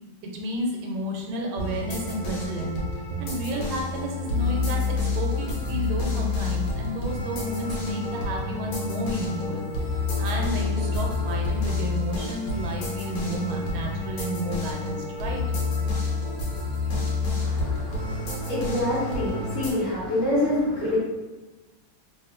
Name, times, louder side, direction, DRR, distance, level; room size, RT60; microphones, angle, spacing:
voice 1, 0.3-2.8 3.2-9.7 10.2-15.4, right 1 dB, 80° right, 0 dB, 1.4 m, -31 dB
sound 1, 1.6-19.7, left 3 dB, 90° left, 1.6 m, -28 dB
voice 2, 17.4-21.0, left 1 dB, 40° left, -9 dB, 1.4 m, -27 dB
3.5 x 2.7 x 2.3 m, 1.1 s
omnidirectional pair, 2.3 m